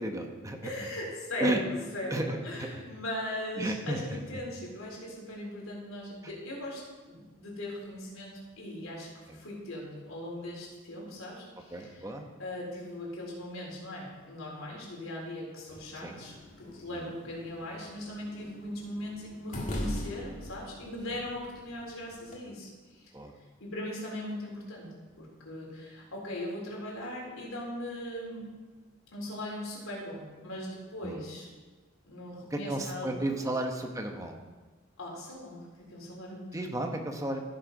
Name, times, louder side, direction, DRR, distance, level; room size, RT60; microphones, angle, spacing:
voice 1, 0.0-0.7 1.4-1.6 2.1-2.7 3.6-4.2 9.3-9.4 11.7-12.3 16.0-16.3 16.9-17.1 23.1-23.3 31.0-31.2 32.5-34.3 36.5-37.4, right 1 dB, 15° right, 3 dB, 1.0 m, -33 dB
voice 2, 0.6-12.1 12.4-23.1 23.6-28.5 29.1-31.5 32.0-33.5 35.0-37.0, left 1 dB, 80° left, -3 dB, 3.8 m, -39 dB
sound 1, 15.7-22.4, equal, 35° left, 1.7 m, -41 dB
15.0 x 6.5 x 5.3 m, 1.3 s
head